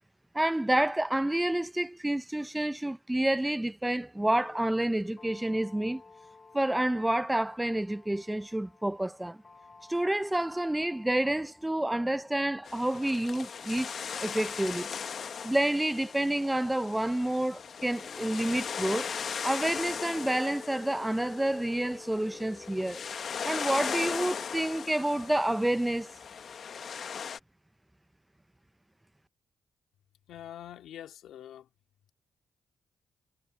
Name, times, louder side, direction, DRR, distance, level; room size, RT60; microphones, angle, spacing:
voice 1, 0.3-6.0 6.5-9.4 9.9-13.9 14.2-14.9 15.4-19.1 19.4-23.0 23.4-26.1, right 1 dB, 10° right, 0.6 m, -29 dB
sound 1, 4.4-23.9, left 4 dB, 40° left, 1.1 m, -52 dB
sound 2, 12.6-27.4, left 7 dB, 60° left, 1.3 m, -38 dB
voice 2, 30.3-31.7, left 11 dB, 85° left, 2.4 m, -45 dB
supercardioid pair, 60°, 0 cm